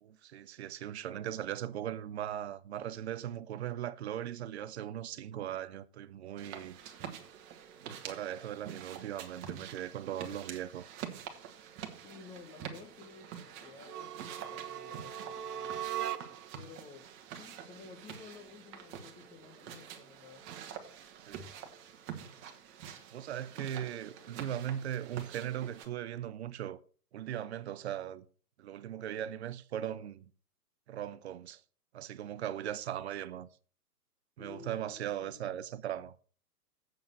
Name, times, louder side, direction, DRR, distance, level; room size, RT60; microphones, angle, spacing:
voice 1, 0.0-6.8 7.8-10.8 21.3-21.5 23.1-26.8 27.1-28.2 28.6-30.3 30.9-31.6 31.9-33.5 34.4-36.2, right 11 dB, 45° right, 0.7 m, -39 dB
sound 1, 6.4-25.9, right 8 dB, 25° right, 1.5 m, -47 dB
voice 2, 12.0-15.8 16.5-20.5 23.5-24.7 34.4-35.6, left 5 dB, 15° left, 1.0 m, -54 dB
sound 2, 13.8-16.6, right 10 dB, 70° right, 0.9 m, -39 dB
7.9 x 7.0 x 6.4 m
hypercardioid pair, 130°, 48 cm